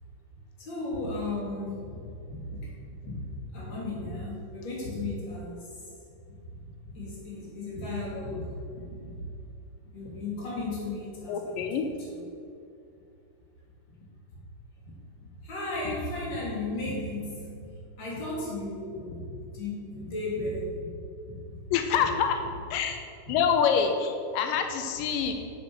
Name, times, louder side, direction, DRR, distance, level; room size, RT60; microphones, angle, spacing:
voice 1, 0.6-2.0 2.3-2.7 3.0-3.2 3.5-5.7 6.3-6.4 6.8-9.2 9.9-12.2 14.8-14.9 15.4-17.5 18.0-20.9 21.2-21.6 24.6-24.7, left 2 dB, 35° left, -5 dB, 3.1 m, -35 dB
voice 2, 11.3-11.9 21.7-22.4 22.7-23.0 23.3-25.3, left 7 dB, 85° left, 6 dB, 2.3 m, -26 dB
8.0 x 7.3 x 6.2 m, 2.6 s
omnidirectional pair, 3.8 m